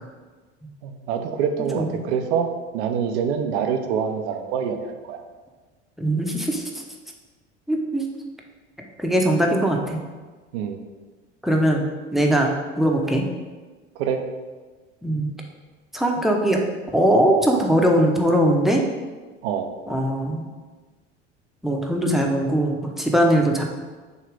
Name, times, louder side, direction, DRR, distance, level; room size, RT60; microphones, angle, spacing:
voice 1, 0.8-5.2 10.5-10.8 14.0-14.2 19.4-19.7, right 7 dB, 65° right, 6 dB, 0.7 m, -25 dB
voice 2, 6.0-6.6 7.7-8.0 9.0-10.0 11.4-11.8 12.1-12.5 12.8-13.2 15.0-15.3 15.9-16.6 16.9-18.8 19.9-20.4 21.6-23.6, right 1 dB, ahead, 0 dB, 0.9 m, -20 dB
6.7 x 2.8 x 5.0 m, 1.3 s
hypercardioid pair, 75°, 36 cm